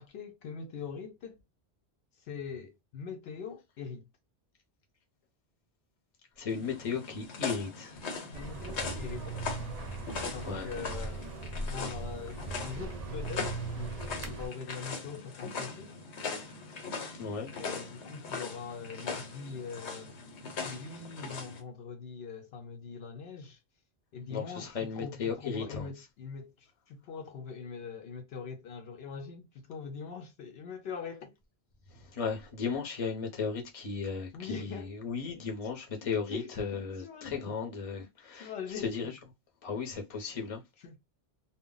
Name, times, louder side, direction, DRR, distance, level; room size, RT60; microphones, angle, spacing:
voice 1, 0.0-1.4 2.2-4.1 8.3-9.6 10.2-11.3 11.6-15.9 17.5-20.2 20.6-23.6 24.1-31.3 34.3-34.9 35.3-35.5 36.0-37.6 38.0-38.1 38.3-39.1 40.8-41.0, left 6 dB, 70° left, 0.8 m, -42 dB
voice 2, 6.4-8.1 10.4-10.7 17.2-17.5 24.3-25.9 31.9-39.1 39.6-40.6, left 5 dB, 35° left, 0.7 m, -35 dB
sound 1, 6.5-21.6, left 4 dB, 90° left, 1.1 m, -40 dB
sound 2, 8.3-14.5, right 3 dB, 50° right, 0.5 m, -39 dB
2.1 x 2.0 x 3.7 m
omnidirectional pair, 1.1 m